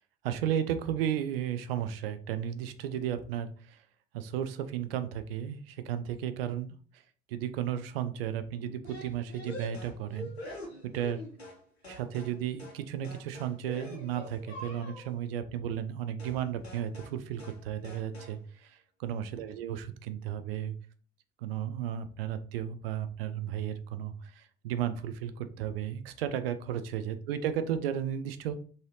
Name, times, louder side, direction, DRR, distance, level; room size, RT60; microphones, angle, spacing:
voice 1, 0.2-3.8 4.1-6.8 7.3-10.3 10.8-11.3 11.9-20.8 21.4-28.6, right 9 dB, 70° right, 11 dB, 0.5 m, -34 dB
sound 1, 8.8-11.6 11.8-12.3 12.6-12.8 13.0-15.1 16.2-16.4 16.6-17.1 17.4-17.6 17.8-18.3, left 1 dB, 85° left, 0.9 m, -44 dB
3.8 x 2.7 x 3.1 m, 0.43 s
figure-of-eight pair, 55°, 31 cm